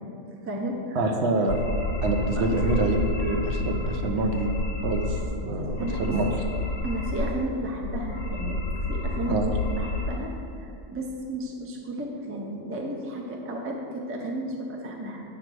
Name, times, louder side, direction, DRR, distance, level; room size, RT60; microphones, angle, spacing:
voice 1, 0.4-1.1 2.4-2.5 5.8-6.1 6.8-8.6 8.9-15.2, right 1 dB, 15° right, -1 dB, 0.4 m, -33 dB
voice 2, 0.9-1.6 2.0-4.5 4.8-6.3 9.3-9.5, right 2 dB, 70° right, 3 dB, 0.9 m, -26 dB
sound 1, 1.5-5.3 5.6-7.5 7.8-10.1, left 2 dB, 65° left, 1.3 m, -29 dB
7.6 x 3.4 x 6.0 m, 2.6 s
omnidirectional pair, 1.2 m